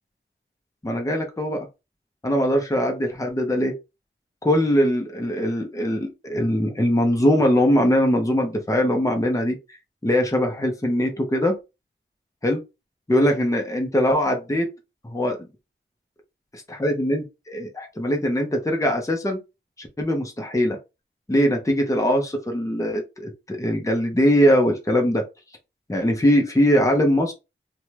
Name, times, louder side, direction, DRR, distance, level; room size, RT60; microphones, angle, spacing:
voice 1, 0.8-1.7 2.2-3.7 4.4-9.6 10.0-11.5 12.4-12.6 13.1-14.7 15.0-15.4 16.5-19.4 19.8-20.8 21.3-25.2 25.9-27.3, equal, 15° left, 2 dB, 0.7 m, -21 dB
2.7 x 2.2 x 3.1 m, 0.25 s
wide cardioid pair, 55°, 21 cm